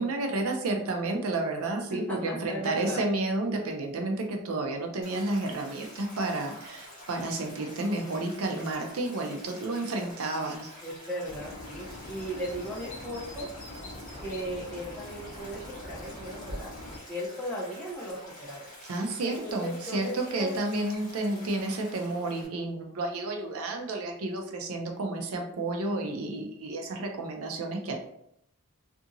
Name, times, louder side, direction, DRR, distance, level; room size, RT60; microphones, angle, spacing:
voice 1, 0.0-10.7 18.8-28.0, right 2 dB, 70° right, 3 dB, 0.5 m, -31 dB
voice 2, 1.9-3.0 10.8-13.5 14.2-18.6 19.2-20.6, equal, 5° left, -7 dB, 0.8 m, -37 dB
Stream, 5.0-22.5, left 1 dB, 40° left, 1.3 m, -48 dB
sound 1, 11.2-17.0, left 1 dB, 70° left, 0.7 m, -43 dB
2.7 x 2.5 x 2.5 m, 0.76 s
head